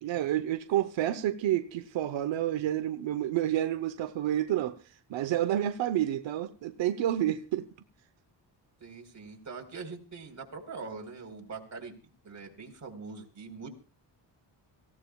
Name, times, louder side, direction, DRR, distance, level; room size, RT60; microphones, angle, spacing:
voice 1, 0.0-7.7, right 12 dB, 85° right, 1.0 m, -29 dB
voice 2, 8.8-12.0 12.2-13.7, right 4 dB, 40° right, 4.2 m, -43 dB
25.0 x 16.5 x 2.4 m
cardioid pair, 130°, 44 cm